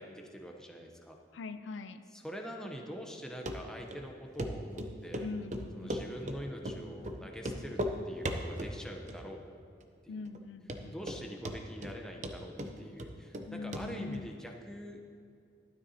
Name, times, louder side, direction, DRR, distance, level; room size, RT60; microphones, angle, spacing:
voice 1, 0.0-1.2 2.1-5.3 5.7-7.8 8.1-9.4 10.0-10.3 10.9-15.0, equal, 5° left, 1 dB, 0.7 m, -45 dB
voice 2, 1.3-2.0 5.2-6.2 10.1-11.3 13.4-14.3, left 4 dB, 70° left, 10 dB, 0.4 m, -43 dB
Run, 3.5-3.6 3.9-4.0 4.4-4.5 4.8-6.4 6.6-6.8 7.0-7.2 7.4-7.9 8.2-8.7 9.1-9.5 9.8-9.9 10.3-10.4 10.7-11.2 11.4-11.9 12.2-13.5 13.7-13.8 14.1-14.2, equal, 40° right, 0.6 m, -36 dB
12.0 x 12.0 x 2.8 m, 2.4 s
head